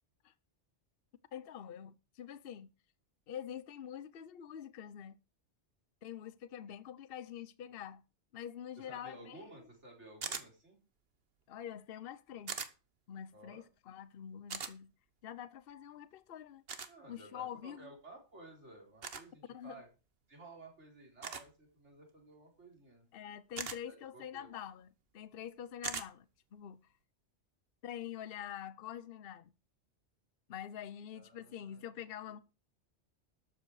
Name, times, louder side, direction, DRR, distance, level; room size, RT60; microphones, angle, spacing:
voice 1, 1.3-2.7 3.3-5.2 6.0-8.0 8.3-9.5 11.5-12.6 13.1-14.9 15.2-16.6 17.1-17.9 19.5-19.8 23.1-26.9 27.8-29.5 30.5-32.4, left 9 dB, 60° left, 0.9 m, -46 dB
voice 2, 8.8-10.8 13.3-13.7 16.9-19.9 20.3-23.1 23.9-24.5 31.1-31.9, right 2 dB, 80° right, 4.6 m, -55 dB
sound 1, 10.2-10.5 12.5-12.7 14.5-14.7 16.7-16.9 19.0-19.2 21.2-21.5 23.5-23.8 25.8-26.1, right 5 dB, 55° right, 1.4 m, -40 dB
12.5 x 8.0 x 4.8 m
omnidirectional pair, 1.2 m